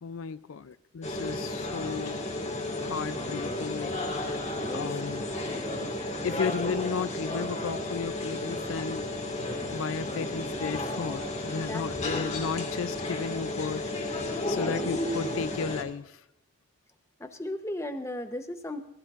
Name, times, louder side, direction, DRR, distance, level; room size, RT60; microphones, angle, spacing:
voice 1, 0.0-2.3 2.8-5.3 6.2-9.1 9.7-16.2, left 5 dB, 80° left, 14 dB, 0.4 m, -34 dB
sound 1, 1.0-15.8, left 2 dB, 35° left, 1.7 m, -33 dB
voice 2, 4.5-4.9 11.5-12.3 14.4-14.9 17.2-18.8, left 1 dB, 15° left, 7 dB, 0.8 m, -37 dB
17.5 x 15.5 x 2.5 m, 0.84 s
head